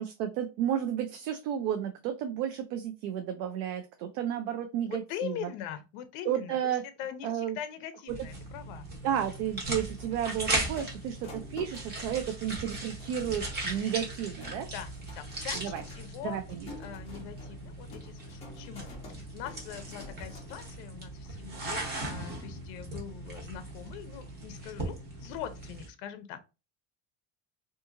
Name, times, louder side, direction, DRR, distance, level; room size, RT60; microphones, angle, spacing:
voice 1, 0.0-5.3 6.3-6.8 7.2-7.6 9.0-14.7 15.6-15.8 16.2-16.6, right 9 dB, 70° right, 0.5 m, -32 dB
voice 2, 4.9-8.9 14.7-16.4 16.8-26.4, left 10 dB, 65° left, 0.5 m, -42 dB
sound 1, 8.1-25.9, right 2 dB, 25° right, 0.8 m, -38 dB
sound 2, 10.0-20.7, left 3 dB, 15° left, 0.5 m, -50 dB
2.7 x 2.5 x 2.4 m
cardioid pair, 170°, 38 cm